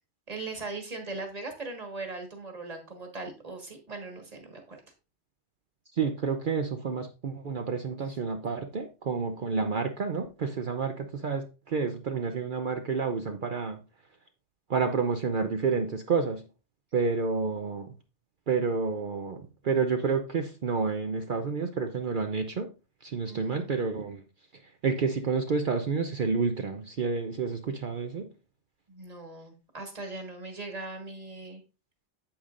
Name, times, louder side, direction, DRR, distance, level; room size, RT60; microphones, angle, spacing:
voice 1, 0.3-4.8 23.3-23.8 28.9-31.6, right 3 dB, 35° right, 3 dB, 1.7 m, -39 dB
voice 2, 5.9-13.8 14.7-16.4 16.9-17.9 18.5-22.7 23.0-24.2 24.5-28.3, right 5 dB, 50° right, 6 dB, 0.8 m, -29 dB
8.8 x 8.2 x 2.5 m, 0.31 s
omnidirectional pair, 1.2 m